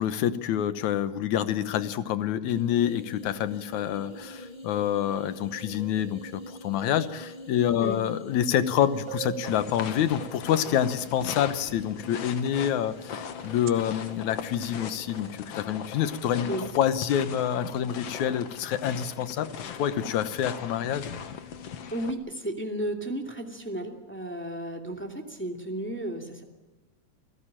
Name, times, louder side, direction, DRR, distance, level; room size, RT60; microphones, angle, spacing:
voice 1, 0.0-19.5 19.8-21.1, left 10 dB, 80° left, 12 dB, 2.5 m, -27 dB
sound 1, 2.5-15.3, equal, 20° left, 2.0 m, -46 dB
sound 2, 8.5-8.6 9.1-10.8 13.4-13.7, right 13 dB, 65° right, 1.6 m, -40 dB
sound 3, 9.4-22.1, left 7 dB, 60° left, 2.3 m, -40 dB
voice 2, 21.9-26.4, right 1 dB, 5° left, 3 dB, 2.3 m, -33 dB
27.5 x 16.5 x 8.9 m, 1.2 s
omnidirectional pair, 3.3 m